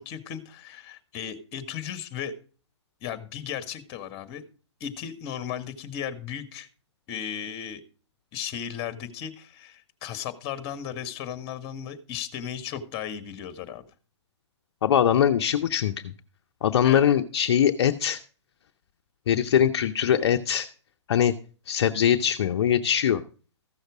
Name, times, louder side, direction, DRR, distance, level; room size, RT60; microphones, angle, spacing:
voice 1, 0.0-2.3 3.0-4.4 4.8-6.7 7.1-7.8 8.3-13.8 16.8-17.0, left 9 dB, 35° left, 13 dB, 1.5 m, -35 dB
voice 2, 14.8-16.1 16.6-18.2 19.3-20.7 21.1-21.3 21.7-23.2, left 9 dB, 60° left, 7 dB, 0.7 m, -22 dB
14.5 x 6.5 x 4.8 m, 0.39 s
hypercardioid pair, 120°, 15 cm